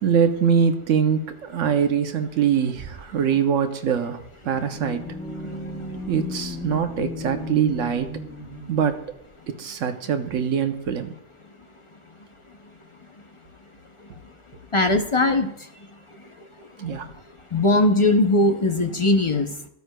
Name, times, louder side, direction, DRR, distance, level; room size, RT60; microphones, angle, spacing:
voice 1, 0.0-4.2 4.4-5.0 6.1-8.1 8.7-9.0 9.5-11.1 16.8-17.1, right 7 dB, 80° right, 7 dB, 1.1 m, -23 dB
sound 1, 4.3-9.1, left 2 dB, 75° left, 1.6 m, -35 dB
voice 2, 14.7-15.5 17.5-19.7, left 2 dB, 40° left, 5 dB, 0.4 m, -19 dB
14.0 x 9.3 x 2.2 m, 0.76 s
omnidirectional pair, 1.3 m